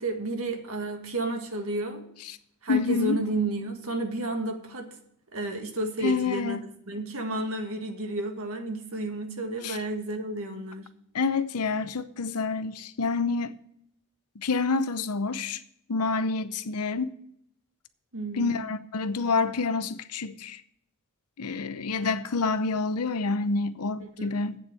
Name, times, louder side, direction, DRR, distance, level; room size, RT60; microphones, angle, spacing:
voice 1, 0.0-2.0 2.6-5.0 5.3-6.6 6.9-10.9 18.1-18.7 24.0-24.4, right 2 dB, 65° right, 1.7 m, -32 dB
voice 2, 2.7-3.2 6.0-6.6 9.6-9.8 11.1-13.6 14.4-15.6 15.9-17.1 18.3-20.6 21.4-24.6, left 4 dB, 80° left, 0.8 m, -28 dB
8.7 x 7.2 x 7.7 m
head